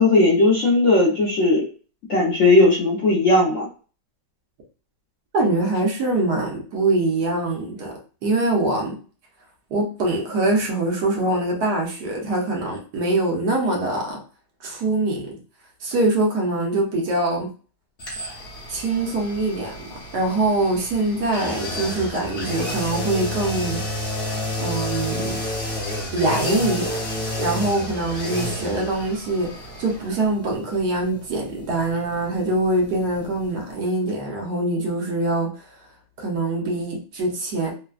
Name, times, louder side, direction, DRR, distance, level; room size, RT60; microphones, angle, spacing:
voice 1, 0.0-1.7 2.1-3.7, left 2 dB, 60° left, -3 dB, 0.8 m, -17 dB
voice 2, 5.3-7.9 8.2-9.0 9.7-14.2 14.6-15.4 15.8-17.5 18.7-23.8 24.6-25.4 26.1-27.0 27.4-29.5 29.8-35.5 36.2-37.7, right 2 dB, 70° right, 0 dB, 1.3 m, -23 dB
sound 1, 18.0-33.8 34.1-34.2, left 1 dB, 40° left, 1.1 m, -31 dB
3.3 x 2.1 x 2.3 m, 0.38 s
omnidirectional pair, 1.9 m